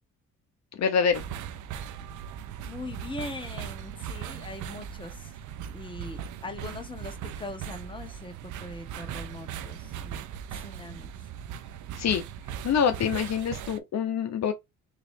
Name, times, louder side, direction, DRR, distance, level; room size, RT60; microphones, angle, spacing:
voice 1, 0.8-1.2 12.0-12.2 12.6-14.5, left 7 dB, 60° left, 0.9 m, -25 dB
sound 1, 1.1-13.8, right 9 dB, 75° right, 0.6 m, -39 dB
voice 2, 2.6-5.3 5.7-10.2 10.5-11.1, left 2 dB, 15° left, 1.4 m, -41 dB
3.9 x 3.1 x 2.7 m
cardioid pair, 90°, 30 cm